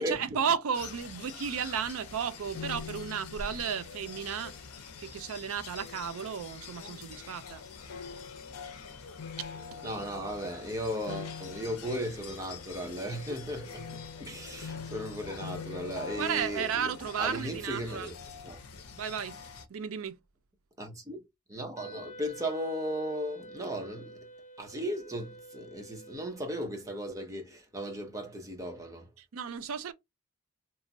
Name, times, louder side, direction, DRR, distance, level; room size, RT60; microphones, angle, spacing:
voice 1, 0.0-4.6 5.0-7.6 9.7-9.8 16.2-18.1 19.0-19.4 19.7-20.2 29.2-29.9, right 7 dB, 65° right, 0.4 m, -33 dB
sound 1, 0.7-19.7, left 5 dB, 85° left, 0.6 m, -44 dB
voice 2, 9.8-16.9 17.2-18.2 18.4-18.6 20.8-21.2 21.5-24.3 24.6-29.1, equal, 15° right, 0.7 m, -36 dB
Wind instrument woodwind instrument, 21.8-26.9, right 1 dB, 40° left, 0.5 m, -49 dB
3.0 x 2.2 x 2.5 m
head